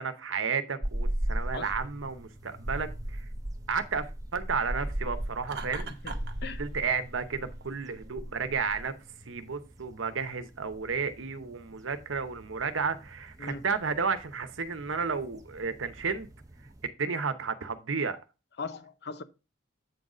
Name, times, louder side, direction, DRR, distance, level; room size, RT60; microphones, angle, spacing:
voice 1, 0.0-3.2 3.7-5.9 6.6-8.9 9.3-16.3 17.0-18.2, right 5 dB, 85° right, 0.9 m, -32 dB
sound 1, 0.8-16.9, right 1 dB, 20° right, 0.9 m, -39 dB
Laughter, 5.4-6.4, right 5 dB, 55° right, 1.0 m, -40 dB
voice 2, 5.7-6.6 13.4-13.7 18.6-19.2, left 4 dB, 60° left, 0.7 m, -40 dB
8.3 x 4.0 x 4.9 m
head